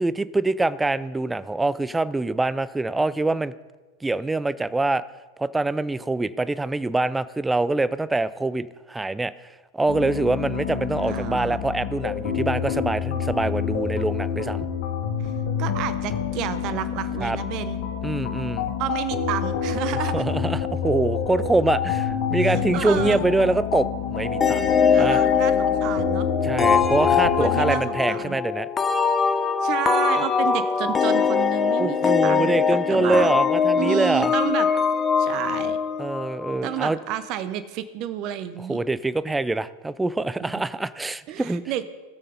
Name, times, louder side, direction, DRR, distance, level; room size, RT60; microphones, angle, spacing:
voice 1, 0.0-3.5 4.0-5.0 5.4-14.7 17.2-17.4 18.0-18.7 19.9-24.7 25.0-25.2 26.4-28.7 31.8-34.3 36.0-37.0 38.7-41.8, right 2 dB, 10° right, 17 dB, 0.4 m, -24 dB
sound 1, 9.9-27.8, left 7 dB, 60° left, 1.5 m, -27 dB
voice 2, 11.1-11.6 15.2-15.3 15.6-17.8 18.8-20.3 22.4-23.3 24.9-26.3 27.0-28.4 29.2-29.3 29.6-32.6 32.9-33.3 33.7-34.7 35.2-35.8 36.6-38.8 40.4-40.6 41.3-41.8, right 12 dB, 45° right, 13 dB, 0.8 m, -30 dB
sound 2, 24.4-36.8, left 6 dB, 25° left, 0.7 m, -22 dB
18.5 x 6.6 x 3.9 m, 1.2 s
hypercardioid pair, 90°, 0 cm